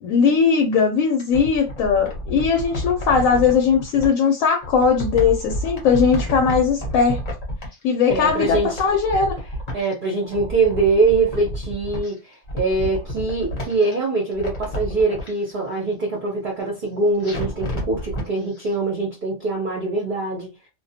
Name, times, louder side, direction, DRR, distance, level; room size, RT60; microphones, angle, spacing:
voice 1, 0.0-7.2 7.8-9.4, left 6 dB, 75° left, 0.9 m, -19 dB
sound 1, 1.0-4.1 4.6-9.9 10.2-12.1 12.4-13.9 14.3-15.3 17.2-18.3 18.6-18.7, equal, 35° left, 0.8 m, -30 dB
voice 2, 8.1-8.8 9.7-20.5, right 3 dB, 50° right, 0.6 m, -23 dB
2.3 x 2.2 x 2.7 m
omnidirectional pair, 1.5 m